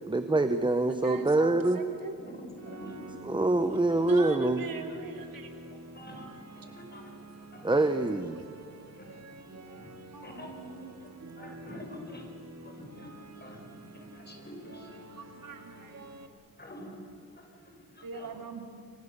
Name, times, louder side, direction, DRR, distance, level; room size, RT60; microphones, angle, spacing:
voice 1, 0.1-1.8 3.2-4.6 7.6-8.4, right 2 dB, 15° right, 9 dB, 0.9 m, -25 dB
voice 2, 0.9-2.2 3.7-5.7 10.1-11.3 15.1-16.2 18.0-18.6, right 5 dB, 70° right, 4 dB, 3.0 m, -41 dB
voice 3, 2.3-3.4 5.9-7.7 9.0-9.2 9.6-9.9 10.2-10.5 11.0-11.1 11.4-13.6 13.9-15.8 16.6-18.4, equal, 30° left, 3 dB, 4.9 m, -48 dB
sound 1, 2.6-16.3, right 1 dB, 45° right, 2.4 m, -48 dB
28.5 x 24.5 x 6.8 m, 2.8 s
wide cardioid pair, 145°, 35 cm